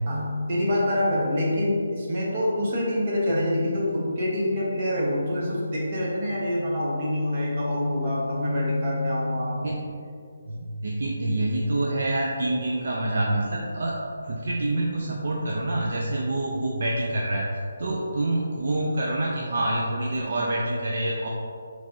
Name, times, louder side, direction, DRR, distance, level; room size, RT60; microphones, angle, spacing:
voice 1, 0.1-9.6, left 1 dB, 30° right, -5 dB, 1.0 m, -26 dB
voice 2, 10.5-13.9 14.2-17.4 17.8-21.3, right 1 dB, 50° right, -3 dB, 0.5 m, -26 dB
6.2 x 3.3 x 2.6 m, 2.2 s
hypercardioid pair, 175°, 0 cm